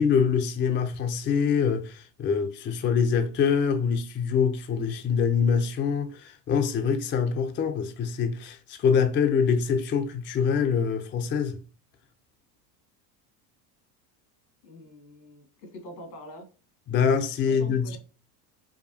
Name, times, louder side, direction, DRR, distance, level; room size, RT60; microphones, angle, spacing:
voice 1, 0.0-11.6 16.9-18.0, left 6 dB, 25° left, 0.4 m, -25 dB
voice 2, 14.6-16.5 17.5-18.0, equal, 90° left, 1.9 m, -44 dB
4.8 x 2.3 x 2.7 m
hypercardioid pair, 90°, 49 cm